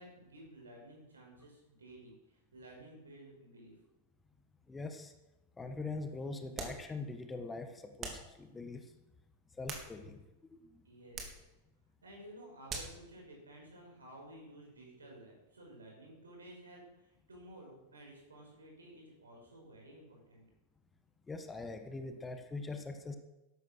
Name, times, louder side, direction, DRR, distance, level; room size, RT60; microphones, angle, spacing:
voice 1, 0.0-3.8 10.8-11.5 12.0-20.4, right 1 dB, 75° right, -1 dB, 6.2 m, -54 dB
voice 2, 4.7-5.1 5.6-8.9 9.5-10.8 21.3-23.2, left 3 dB, 15° left, 7 dB, 1.5 m, -43 dB
sound 1, 6.5-6.9 8.0-8.3 9.4-10.3 11.1-11.5 12.7-13.0, right 4 dB, 30° right, 3.2 m, -43 dB
13.0 x 11.5 x 6.4 m, 0.99 s
figure-of-eight pair, 90°, 0 cm